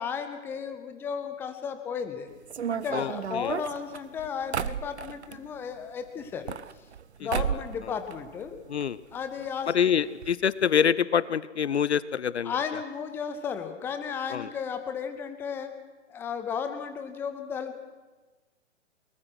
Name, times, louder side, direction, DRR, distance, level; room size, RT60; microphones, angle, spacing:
voice 1, 0.0-2.3 2.7-6.5 7.2-8.6 9.1-9.7 12.4-15.7 16.1-17.8, left 7 dB, 5° left, 8 dB, 0.7 m, -34 dB
sound 1, 2.5-5.4 6.2-7.0 7.3-7.8 8.1-8.9 9.1-9.2 9.4-9.5 10.2-10.3 10.6-10.8, right 8 dB, 60° right, 0.8 m, -33 dB
voice 2, 2.9-3.6 7.2-7.3 7.8-7.9 8.7-9.0 9.7-12.8 14.3-14.5, left 8 dB, 60° left, 19 dB, 0.6 m, -26 dB
21.5 x 20.0 x 6.2 m, 1.3 s
figure-of-eight pair, 125°, 37 cm